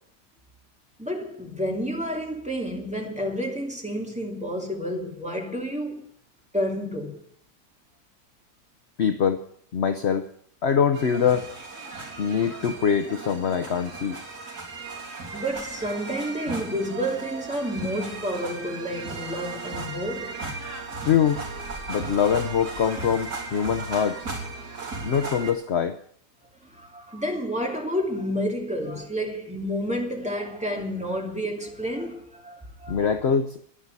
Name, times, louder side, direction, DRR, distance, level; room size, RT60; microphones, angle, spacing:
voice 1, 1.0-6.1 6.5-7.2 12.0-12.2 15.3-20.4 26.7-33.1, equal, 5° right, 2.5 m, -30 dB
voice 2, 9.0-9.4 9.7-10.3 10.6-11.5 12.2-14.2 21.0-21.4 21.9-24.3 25.0-26.0 32.9-33.6, left 7 dB, 55° left, 0.7 m, -23 dB
sound 1, 10.9-25.5, right 3 dB, 60° right, 4.0 m, -36 dB
11.5 x 11.0 x 8.2 m
omnidirectional pair, 1.9 m